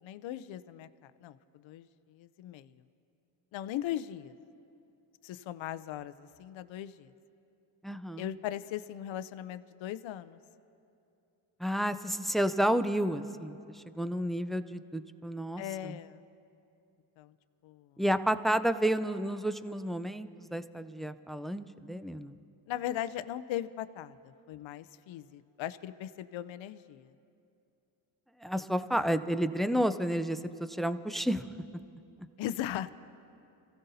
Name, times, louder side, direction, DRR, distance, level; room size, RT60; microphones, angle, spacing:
voice 1, 0.0-2.7 3.5-4.3 5.2-7.1 8.2-10.4 15.6-16.2 17.2-17.3 17.6-17.9 22.7-27.1 28.9-29.0 32.4-32.9, left 12 dB, 65° left, 13 dB, 0.6 m, -39 dB
voice 2, 7.8-8.3 11.6-16.0 18.0-22.3 28.4-31.4, equal, ahead, 11 dB, 0.5 m, -31 dB
27.0 x 16.0 x 2.7 m, 2.7 s
supercardioid pair, 65°, 50 cm